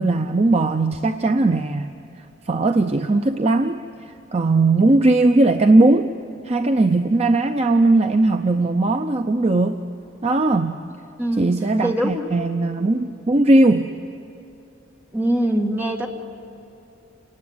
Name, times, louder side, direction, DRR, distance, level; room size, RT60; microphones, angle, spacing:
voice 1, 0.0-1.9 2.2-6.1 6.4-9.8 10.2-10.8 11.4-13.9, right 2 dB, 30° right, 7 dB, 0.5 m, -18 dB
voice 2, 11.2-11.5 11.8-12.2 15.1-16.1, right 1 dB, 10° right, 1 dB, 1.6 m, -22 dB
28.5 x 18.0 x 9.6 m, 2.8 s
head